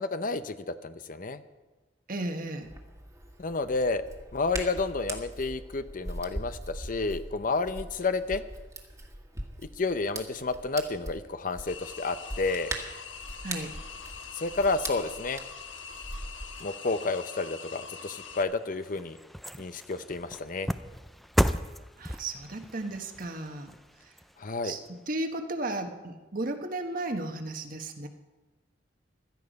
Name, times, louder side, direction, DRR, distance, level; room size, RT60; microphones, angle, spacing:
voice 1, 0.0-1.4 3.4-4.0 4.3-8.4 9.8-12.7 14.3-15.4 16.6-19.2 19.6-20.7 24.4-24.7, left 3 dB, 45° left, 11 dB, 0.7 m, -30 dB
voice 2, 2.1-2.7 13.4-13.7 22.0-23.7 24.6-24.8 25.1-28.1, right 2 dB, 50° right, 6 dB, 1.3 m, -34 dB
Hands, 2.6-16.6, right 1 dB, 15° right, 1.6 m, -41 dB
sound 1, 11.7-18.4, left 6 dB, 85° left, 1.4 m, -43 dB
sound 2, 18.5-24.9 25.3-25.4, equal, ahead, 0.4 m, -34 dB
16.5 x 13.0 x 5.3 m, 1.2 s
head